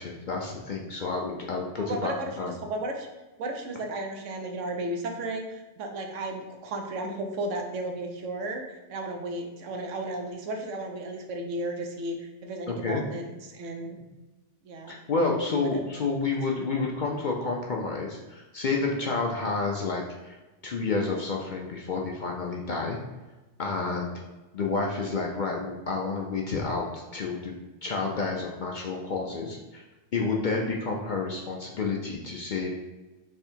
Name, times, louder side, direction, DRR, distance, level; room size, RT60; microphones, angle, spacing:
voice 1, 0.0-2.5 12.7-13.0 14.9-20.4 20.6-23.0 23.6-24.1 24.5-27.5 27.8-29.8 30.1-32.7, left 3 dB, 55° left, 0 dB, 0.5 m, -30 dB
voice 2, 1.8-3.1 3.4-14.0 14.6-14.9 15.2-15.8 16.7-16.9, right 2 dB, 85° right, 3 dB, 1.1 m, -34 dB
3.5 x 3.3 x 4.4 m, 1.1 s
omnidirectional pair, 1.2 m